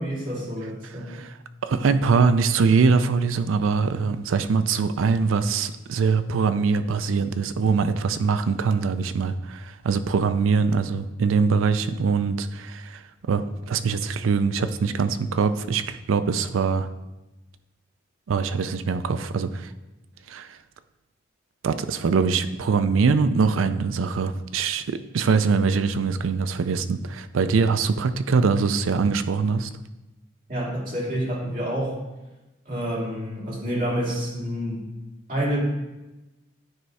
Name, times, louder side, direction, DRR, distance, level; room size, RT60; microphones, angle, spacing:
voice 1, 0.0-1.2 30.5-32.0 32.7-34.9 35.3-35.6, equal, 40° right, -6 dB, 2.2 m, -28 dB
voice 2, 1.6-13.0 13.3-16.9 18.3-19.7 20.3-20.6 21.6-29.7, right 5 dB, 85° right, 12 dB, 0.4 m, -23 dB
9.5 x 3.2 x 4.7 m, 1.0 s
head